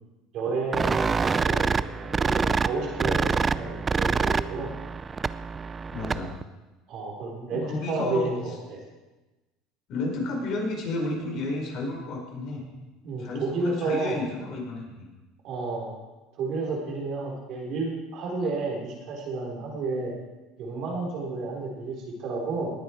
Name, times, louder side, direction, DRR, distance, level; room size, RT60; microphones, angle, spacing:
voice 1, 0.3-4.7 6.9-8.8 13.0-14.2 15.4-15.9 16.4-20.1 20.6-22.7, right 3 dB, 55° right, -1 dB, 4.1 m, -31 dB
sound 1, 0.7-6.4, right 5 dB, 25° right, 0.4 m, -26 dB
voice 2, 5.9-6.3 7.5-8.3 9.9-12.6 13.2-15.1, left 2 dB, 50° left, -1 dB, 4.8 m, -31 dB
19.0 x 8.9 x 4.6 m, 1.1 s
supercardioid pair, 115°, 0 cm